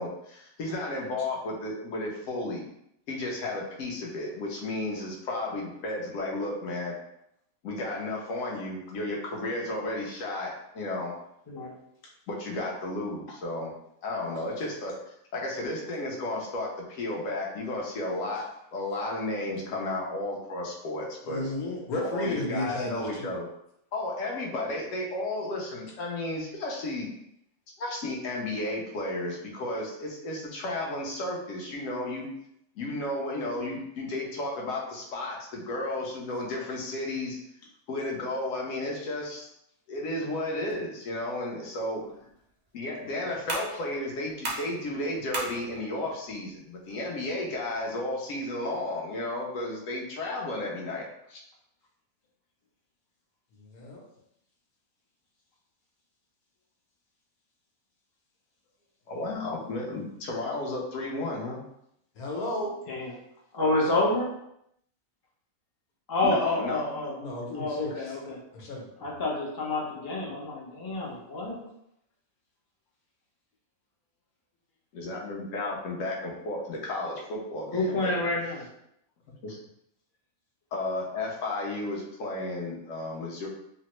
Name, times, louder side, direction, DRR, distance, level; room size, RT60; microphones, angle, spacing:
voice 1, 0.0-2.6 3.1-6.9 7.6-11.1 12.3-13.7 14.0-14.9 15.3-21.5 22.0-23.5 23.9-27.1 27.8-32.3 32.8-37.4 37.9-39.5 39.9-42.0 42.7-51.4 59.1-61.6 66.2-67.1 74.9-78.1 79.4-79.6 80.7-83.5, left 2 dB, 65° left, -2 dB, 1.0 m, -33 dB
voice 2, 21.2-23.3 53.6-54.0 62.2-62.8 67.2-67.9 68.5-69.1, left 1 dB, 85° left, -2 dB, 1.3 m, -33 dB
sound 1, 42.0-49.0, right 2 dB, 70° right, 0.4 m, -41 dB
voice 3, 63.5-64.3 66.1-67.2 67.5-68.4 69.0-71.6 77.7-78.7, left 2 dB, 40° left, -3 dB, 0.3 m, -28 dB
3.4 x 2.1 x 2.9 m, 0.77 s
omnidirectional pair, 1.5 m